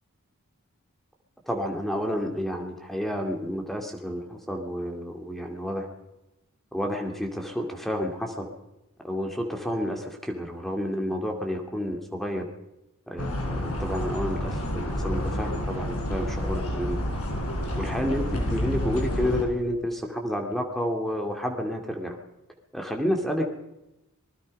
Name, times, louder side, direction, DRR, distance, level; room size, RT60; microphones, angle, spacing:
voice 1, 1.5-5.9 6.7-8.5 9.0-12.5 13.1-17.0 17.8-22.2 22.7-23.5, equal, ahead, 3 dB, 2.5 m, -30 dB
sound 1, 13.2-19.4, left 1 dB, 80° left, 5.6 m, -29 dB
26.0 x 21.0 x 5.4 m, 0.93 s
head